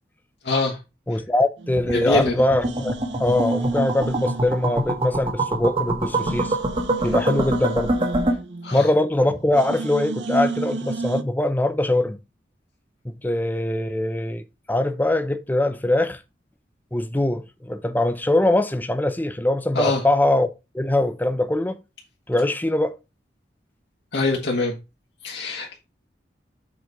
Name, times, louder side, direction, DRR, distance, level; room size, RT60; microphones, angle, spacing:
voice 1, 0.4-0.8 1.9-2.3 8.6-8.9 19.7-20.0 24.1-24.7 25.2-25.8, left 2 dB, 75° left, 1.5 m, -23 dB
voice 2, 1.1-6.6 7.0-7.9 8.7-12.2 13.2-14.4 14.7-16.2 16.9-20.5 20.7-21.8 22.3-22.9, left 1 dB, 10° left, 0.7 m, -22 dB
sound 1, 1.6-2.3 2.6-5.2 5.5-5.6 6.1-9.2 9.5-11.2, right 3 dB, 85° right, 0.7 m, -31 dB
sound 2, 1.8-8.3, right 1 dB, 30° right, 1.4 m, -25 dB
7.6 x 4.2 x 4.6 m
head